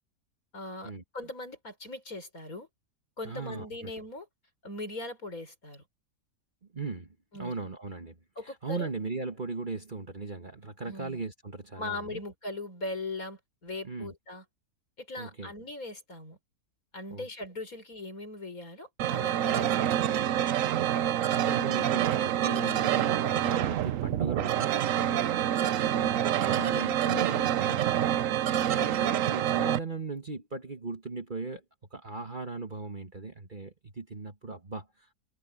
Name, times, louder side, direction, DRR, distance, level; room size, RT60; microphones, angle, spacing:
voice 1, 0.5-2.7 3.2-4.3 4.6-5.8 7.3-7.5 8.4-8.9 10.8-11.2 11.8-14.4 15.0-16.4 16.9-20.1 21.4-21.6 25.0-25.2 28.4-28.7, left 2 dB, 60° left, 5.9 m, -40 dB
voice 2, 3.2-3.9 6.7-7.1 7.4-8.2 8.4-12.2 13.8-14.1 15.2-15.5 17.1-17.3 19.5-19.7 20.7-25.3 25.6-28.2 28.7-31.6 31.9-35.1, right 3 dB, 30° right, 1.5 m, -38 dB
sound 1, 19.0-29.8, right 11 dB, 65° right, 1.0 m, -27 dB
omnidirectional pair, 1.7 m